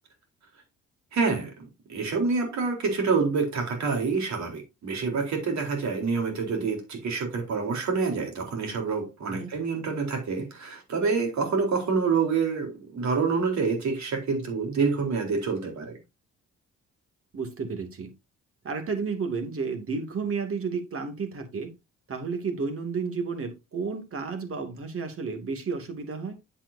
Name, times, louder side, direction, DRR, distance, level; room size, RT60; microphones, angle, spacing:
voice 1, 1.1-16.0, right 4 dB, 65° right, 4.1 m, -27 dB
voice 2, 17.3-18.1 18.6-21.7 22.1-26.4, right 5 dB, 45° right, 2.6 m, -32 dB
9.0 x 7.7 x 2.8 m
cardioid pair, 90°, 30 cm